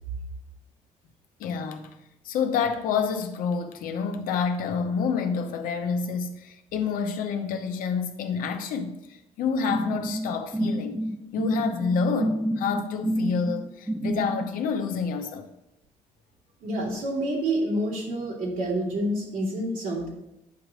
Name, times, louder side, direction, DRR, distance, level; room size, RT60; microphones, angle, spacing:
voice 1, 1.4-2.0 2.2-11.0 11.3-15.5, left 6 dB, 75° left, 0.9 m, -28 dB
sound 1, 9.7-14.5, right 1 dB, 5° right, 0.6 m, -29 dB
voice 2, 16.6-20.1, right 1 dB, 75° right, 2.5 m, -28 dB
9.3 x 3.2 x 6.3 m
supercardioid pair, 75°, 14 cm